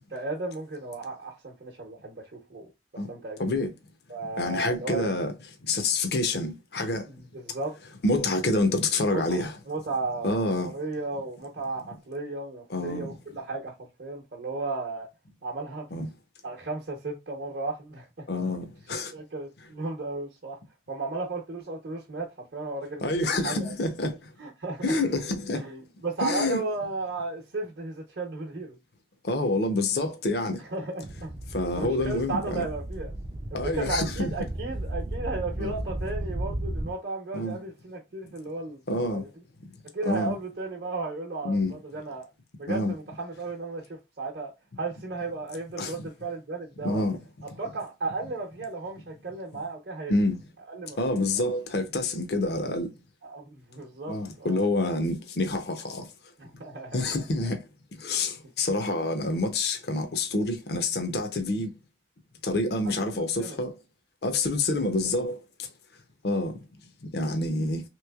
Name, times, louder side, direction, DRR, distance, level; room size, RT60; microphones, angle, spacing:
voice 1, 0.1-2.7 3.1-3.4 4.1-5.1 7.1-7.8 9.1-15.1 15.4-15.9 16.4-18.3 19.1-20.6 20.9-23.7 24.4-24.9 25.5-28.8 30.6-31.3 31.7-33.1 33.5-39.3 39.9-42.3 42.6-44.5 44.8-47.1 47.4-50.1 50.7-51.2 53.2-54.7 56.4-57.2 63.1-63.6 64.8-64.9, right 3 dB, 65° right, 0.7 m, -35 dB
voice 2, 3.4-3.7 4.4-5.3 5.6-7.1 8.0-9.6 10.2-10.7 12.7-13.1 15.9-16.1 18.3-19.1 23.0-24.2 24.8-25.7 26.2-26.6 29.2-30.6 31.5-32.6 33.5-34.3 35.6-35.7 37.3-37.6 38.9-39.2 40.1-40.3 41.4-41.7 42.7-42.9 45.8-46.0 46.8-47.2 50.1-50.4 51.0-52.9 54.1-56.1 56.9-57.6 58.0-61.7 62.4-63.7 64.2-65.7 66.2-66.5 67.1-67.8, left 2 dB, 60° left, 0.6 m, -27 dB
sound 1, 31.0-36.9, right 1 dB, 25° right, 0.3 m, -34 dB
3.3 x 3.0 x 2.3 m
head